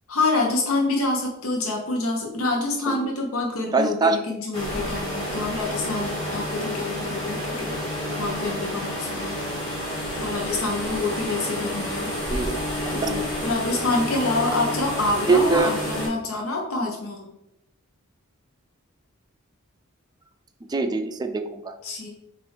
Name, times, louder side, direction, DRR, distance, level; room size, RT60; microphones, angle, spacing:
voice 1, 0.1-7.8 8.2-9.4 10.2-12.1 12.9-17.3 21.8-22.1, left 2 dB, 80° left, 0 dB, 0.7 m, -27 dB
voice 2, 3.7-4.2 12.3-12.5 13.0-13.2 15.3-15.7 20.7-21.7, right 4 dB, 20° right, 7 dB, 0.3 m, -22 dB
sound 1, 4.5-16.1, equal, 20° left, 1.7 m, -29 dB
6.1 x 2.5 x 3.2 m, 0.84 s
head